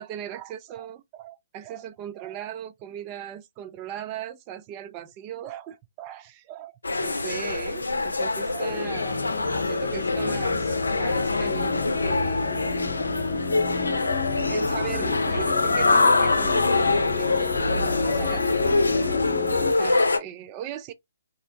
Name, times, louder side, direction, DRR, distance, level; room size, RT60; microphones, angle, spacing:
voice 1, 0.0-12.5 14.5-19.2 19.8-20.9, right 10 dB, 30° right, 0.4 m, -38 dB
sound 1, 6.8-20.2, left 3 dB, 90° left, 0.5 m, -25 dB
sound 2, 8.7-19.7, left 4 dB, 50° left, 0.8 m, -29 dB
2.4 x 2.1 x 2.8 m
hypercardioid pair, 135°, 0 cm